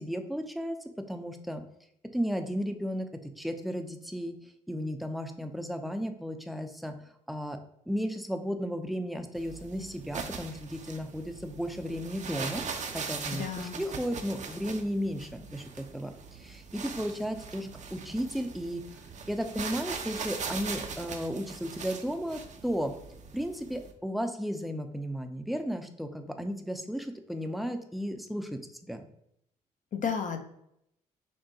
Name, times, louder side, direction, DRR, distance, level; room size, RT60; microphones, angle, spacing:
voice 1, 0.0-1.6 2.1-4.3 4.7-6.9 7.3-7.6 7.9-12.6 12.9-18.8 19.3-22.9 23.3-29.1, equal, ahead, 6 dB, 0.5 m, -34 dB
sound 1, 9.3-23.9, right 5 dB, 45° right, 0.6 m, -41 dB
voice 2, 13.3-13.8 29.9-30.4, left 7 dB, 50° left, 6 dB, 0.7 m, -32 dB
6.1 x 2.2 x 2.8 m, 0.76 s
supercardioid pair, 55°, 16 cm